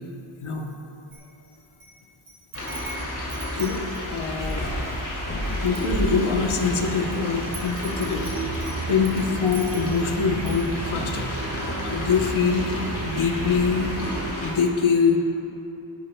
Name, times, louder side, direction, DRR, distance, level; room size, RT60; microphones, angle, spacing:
voice 1, 0.4-0.7 3.6-4.7 5.6-8.3 8.9-11.3 11.8-14.0 14.4-15.2, left 5 dB, 75° left, 3 dB, 1.0 m, -24 dB
Wind chime, 1.1-1.9 2.3-4.7 5.2-5.3 5.5-6.6 7.1-10.1 10.5-10.7, right 2 dB, 90° right, 2.0 m, -37 dB
sound 1, 2.5-14.5, equal, 40° left, 2.7 m, -31 dB
sound 2, 6.4-14.3, right 5 dB, 30° right, 0.4 m, -35 dB
19.0 x 11.0 x 2.2 m, 2.9 s
wide cardioid pair, 140°, 49 cm